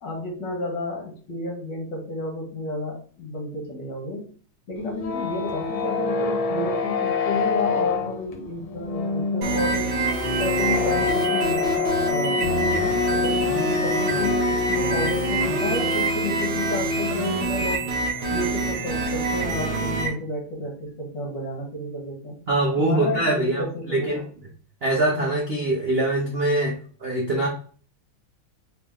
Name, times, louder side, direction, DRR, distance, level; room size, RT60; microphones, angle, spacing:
voice 1, 0.0-4.2 4.7-10.0 10.4-11.7 12.0-17.9 18.3-22.4 22.8-24.2, left 1 dB, 60° left, 0 dB, 1.9 m, -31 dB
sound 1, 4.8-16.0, left 5 dB, 85° left, 1.7 m, -26 dB
sound 2, 9.4-20.1, right 2 dB, 55° right, 1.4 m, -25 dB
voice 2, 22.5-24.2 24.8-27.5, right 2 dB, 80° right, -2 dB, 0.5 m, -23 dB
3.9 x 3.0 x 3.5 m, 0.43 s
omnidirectional pair, 2.3 m